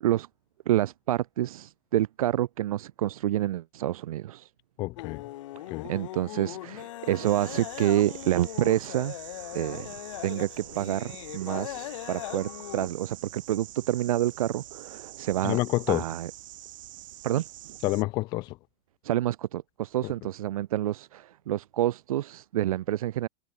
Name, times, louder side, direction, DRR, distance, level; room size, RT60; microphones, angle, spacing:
voice 1, 0.6-4.5 5.8-9.1 9.5-9.9 10.2-15.6 15.9-16.3 17.2-17.4 19.0-23.3, right 13 dB, 90° right, 1.4 m, -28 dB
voice 2, 4.8-5.2 5.7-5.9 15.4-16.0 17.8-18.6 20.0-20.1, left 20 dB, 25° left, 0.4 m, -28 dB
sound 1, 5.0-12.9, left 16 dB, 65° left, 1.3 m, -40 dB
sound 2, 7.2-18.0, right 15 dB, 65° right, 5.1 m, -45 dB
supercardioid pair, 170°, 18 cm